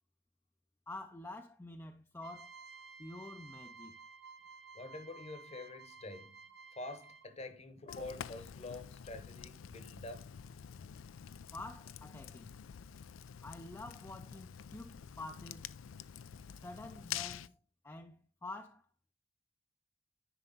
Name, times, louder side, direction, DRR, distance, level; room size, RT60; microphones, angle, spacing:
voice 1, 0.9-2.6 3.0-4.0 11.5-12.5 13.4-15.7 16.6-17.5 17.8-18.9, left 2 dB, 15° left, 0.4 m, -48 dB
sound 1, 2.2-7.4, right 4 dB, 55° right, 0.9 m, -54 dB
voice 2, 4.7-6.4 6.7-10.3, left 2 dB, 35° left, 1.0 m, -47 dB
Fire, 7.9-17.5, left 9 dB, 90° left, 0.4 m, -47 dB
9.9 x 4.6 x 4.1 m
head